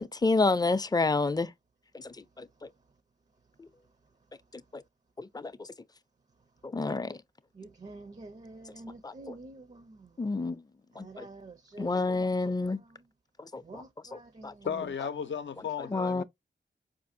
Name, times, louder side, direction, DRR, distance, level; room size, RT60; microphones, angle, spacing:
voice 1, 0.0-1.5 5.2-5.5 6.7-7.2 10.2-10.6 11.0-11.2 11.8-12.8 13.5-13.8 14.1-14.5 15.9-16.2, left 3 dB, 20° left, 0.4 m, -28 dB
voice 2, 7.5-10.1 10.9-12.3 12.6-13.0 13.6-15.0 15.8-16.0, right 3 dB, 40° right, 0.5 m, -48 dB
voice 3, 14.6-16.2, left 7 dB, 80° left, 0.5 m, -34 dB
4.7 x 2.5 x 2.6 m
cardioid pair, 55°, 19 cm